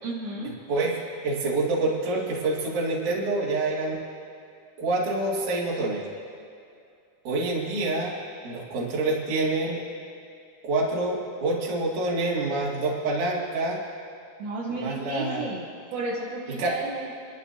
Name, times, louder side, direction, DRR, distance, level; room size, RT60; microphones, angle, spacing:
voice 1, 0.0-0.5 14.4-15.7 15.9-17.1, right 2 dB, 75° right, -5 dB, 3.0 m, -32 dB
voice 2, 1.2-4.0 4.8-6.0 7.2-8.2 8.4-9.8 10.6-13.8 14.7-15.5 16.6-16.8, right 2 dB, 55° right, -6 dB, 3.5 m, -27 dB
28.0 x 11.5 x 2.8 m, 2.5 s
omnidirectional pair, 4.6 m